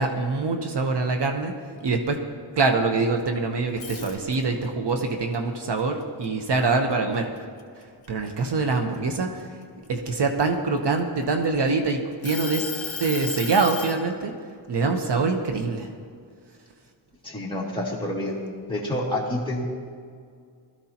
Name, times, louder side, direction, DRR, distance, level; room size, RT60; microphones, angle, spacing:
voice 1, 0.0-1.5 1.8-2.2 2.6-7.3 8.1-9.3 9.9-12.6 13.0-14.3 14.7-15.9, right 3 dB, 60° right, 4 dB, 1.0 m, -24 dB
sound 1, 3.7-4.7 5.1-6.9 7.4-7.6 8.0-9.9 10.6-11.7 12.2-14.0, left 5 dB, 50° left, 2.4 m, -35 dB
voice 2, 17.2-18.4 18.7-19.6, left 1 dB, 10° left, -5 dB, 2.5 m, -28 dB
20.0 x 13.5 x 2.9 m, 2.1 s
wide cardioid pair, 135°, 46 cm